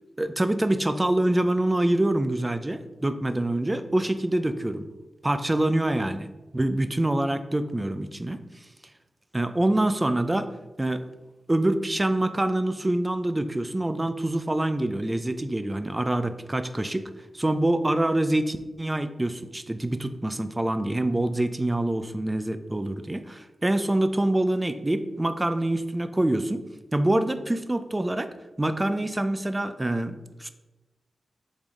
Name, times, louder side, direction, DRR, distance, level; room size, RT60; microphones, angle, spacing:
voice 1, 0.2-4.9 5.2-6.3 6.5-8.4 9.3-10.5 10.8-11.1 11.5-26.6 26.9-28.3 28.6-30.5, right 1 dB, 20° right, 10 dB, 0.4 m, -25 dB
7.5 x 3.4 x 3.6 m, 1.1 s
cardioid pair, 75°, 0 cm